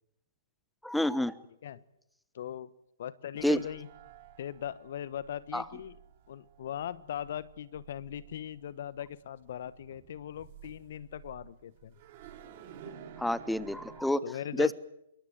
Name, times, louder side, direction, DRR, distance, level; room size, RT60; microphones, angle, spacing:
voice 1, 0.8-1.3 3.4-3.6 5.5-5.6 13.2-14.2 14.6-14.7, left 1 dB, ahead, 16 dB, 1.0 m, -28 dB
voice 2, 2.3-2.7 3.0-3.9 4.4-6.0 6.3-12.0 14.2-14.7, left 10 dB, 55° left, 17 dB, 1.2 m, -39 dB
sound 1, 3.4-14.0, right 9 dB, 45° right, 3.8 m, -53 dB
26.5 x 23.0 x 8.1 m, 0.82 s
figure-of-eight pair, 120°, 0 cm